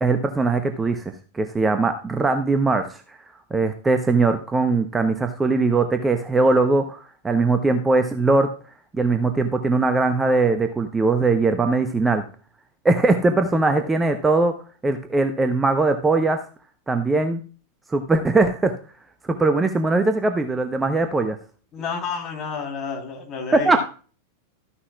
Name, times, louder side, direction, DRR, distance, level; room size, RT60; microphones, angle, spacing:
voice 1, 0.0-3.2 3.5-8.5 8.9-12.2 12.8-14.5 14.8-16.4 16.9-17.4 17.9-18.7 19.3-21.4 23.6-23.8, right 3 dB, 10° right, 8 dB, 0.8 m, -20 dB
voice 2, 21.7-23.8, left 5 dB, 30° left, 2 dB, 3.2 m, -30 dB
13.5 x 9.7 x 2.3 m, 0.38 s
figure-of-eight pair, 90°, 0 cm